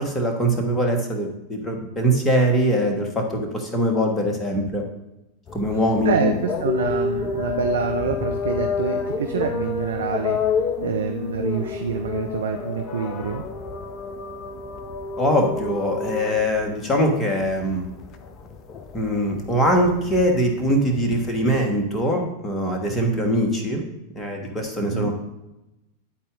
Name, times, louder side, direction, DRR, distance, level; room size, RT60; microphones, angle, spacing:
voice 1, 0.0-4.8 5.5-6.4 15.2-17.9 18.9-23.8 24.1-25.1, equal, 15° left, 2 dB, 1.4 m, -22 dB
sound 1, 5.5-21.6, left 5 dB, 30° left, 0.6 m, -30 dB
voice 2, 6.0-10.4 10.8-13.4 24.9-25.1, right 6 dB, 65° right, 4 dB, 0.5 m, -26 dB
10.5 x 4.2 x 3.8 m, 0.93 s
figure-of-eight pair, 90°, 0 cm